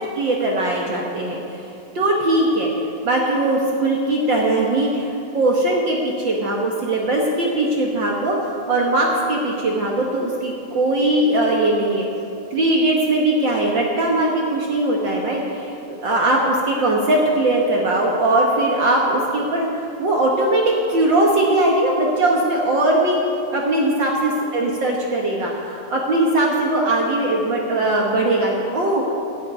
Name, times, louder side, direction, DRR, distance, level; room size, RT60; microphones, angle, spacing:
voice 1, 0.0-1.7 1.9-12.0 12.5-23.2 23.5-29.1, right 1 dB, 75° right, -1 dB, 1.0 m, -20 dB
12.5 x 8.6 x 9.2 m, 2.6 s
omnidirectional pair, 4.2 m